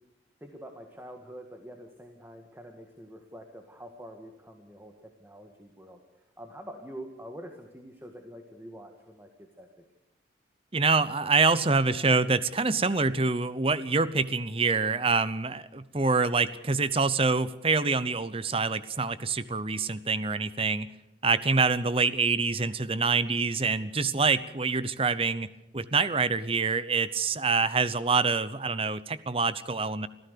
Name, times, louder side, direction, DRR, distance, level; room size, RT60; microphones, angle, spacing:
voice 1, 0.4-6.0 6.4-9.8, equal, 10° right, 4 dB, 1.8 m, -46 dB
voice 2, 10.7-20.9 21.2-30.1, right 4 dB, 30° right, 16 dB, 0.8 m, -26 dB
26.0 x 15.0 x 6.8 m, 0.98 s
head